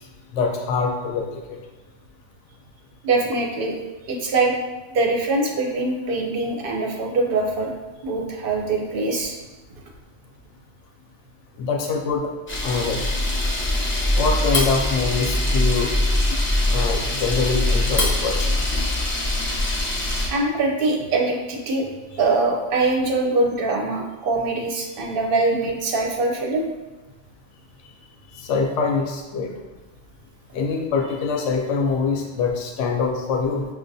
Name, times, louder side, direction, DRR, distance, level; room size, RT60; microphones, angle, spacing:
voice 1, 0.3-1.3 11.6-12.3 12.6-13.0 14.1-15.9 16.3-16.4 16.7-18.5 28.4-29.5 30.5-33.7, left 4 dB, 70° left, 1 dB, 0.9 m, -24 dB
voice 2, 3.0-3.8 4.1-4.6 4.9-7.7 8.0-9.4 20.3-21.9 22.2-26.6, right 3 dB, 55° right, 1 dB, 0.7 m, -23 dB
Camera, 12.5-20.3, left 1 dB, 15° left, 0.4 m, -22 dB
6.1 x 2.3 x 2.6 m, 1.1 s
omnidirectional pair, 1.3 m